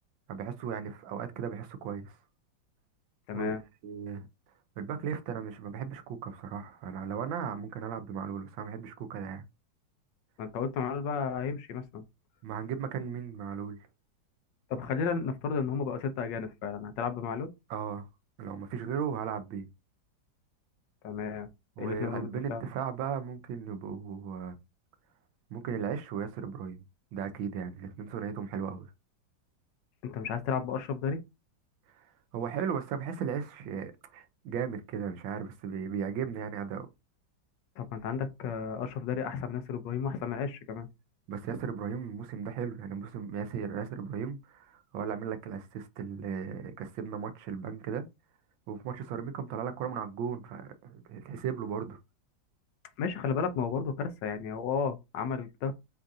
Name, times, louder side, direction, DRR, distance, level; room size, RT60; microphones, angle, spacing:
voice 1, 0.3-2.2 3.3-3.5 3.8-4.3 4.8-9.4 12.4-13.8 17.7-18.1 18.4-19.7 21.8-24.6 25.5-26.8 27.1-28.9 31.9-36.9 41.3-48.1 48.7-52.0, right 7 dB, 85° right, 1.5 m, -36 dB
voice 2, 3.3-3.6 10.4-12.0 14.7-17.5 21.0-21.5 21.8-22.6 30.0-31.2 37.8-40.9 53.0-55.7, left 6 dB, 70° left, 1.3 m, -33 dB
7.3 x 2.5 x 2.6 m
omnidirectional pair, 2.1 m